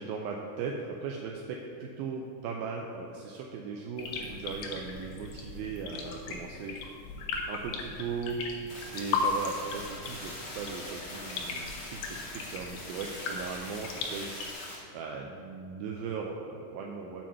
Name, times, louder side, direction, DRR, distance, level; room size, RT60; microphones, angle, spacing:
voice 1, 0.0-6.9 7.5-8.4 8.9-14.3 14.9-17.2, right 5 dB, 85° right, 0 dB, 2.0 m, -38 dB
sound 1, 4.0-14.5, left 4 dB, 75° left, 2.7 m, -37 dB
sound 2, 8.7-14.7, left 1 dB, 50° left, 1.1 m, -43 dB
7.4 x 5.0 x 6.8 m, 2.5 s
omnidirectional pair, 4.8 m